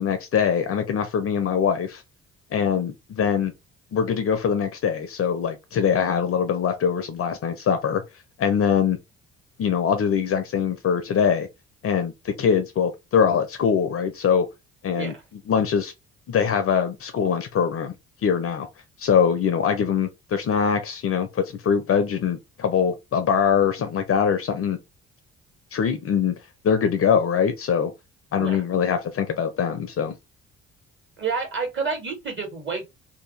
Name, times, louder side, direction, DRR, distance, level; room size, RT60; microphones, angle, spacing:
voice 1, 0.0-2.0 2.5-3.5 3.9-8.0 8.4-9.0 9.6-11.5 11.8-14.5 14.8-15.1 15.5-15.9 16.3-17.9 18.2-18.7 19.0-24.8 25.7-26.3 26.6-27.9 28.3-30.1, left 7 dB, 40° left, 0.6 m, -23 dB
voice 2, 31.2-32.9, right 5 dB, 30° right, 1.7 m, -29 dB
2.7 x 2.2 x 3.1 m
figure-of-eight pair, 45°, 37 cm